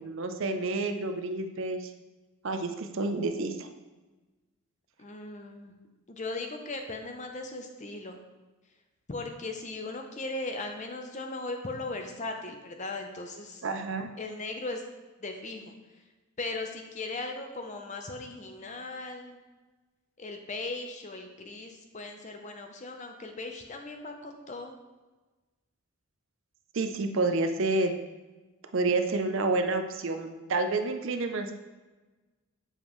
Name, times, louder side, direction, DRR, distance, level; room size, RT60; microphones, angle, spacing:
voice 1, 0.0-1.9 2.4-3.7 13.6-14.1 26.7-27.9 28.7-31.6, right 3 dB, 60° right, 7 dB, 0.5 m, -29 dB
voice 2, 5.0-5.7 6.1-8.2 9.1-13.6 14.2-14.8 15.2-15.7 16.4-19.4 20.2-24.7, left 2 dB, 35° left, 4 dB, 0.6 m, -38 dB
7.2 x 5.2 x 3.1 m, 1.2 s
head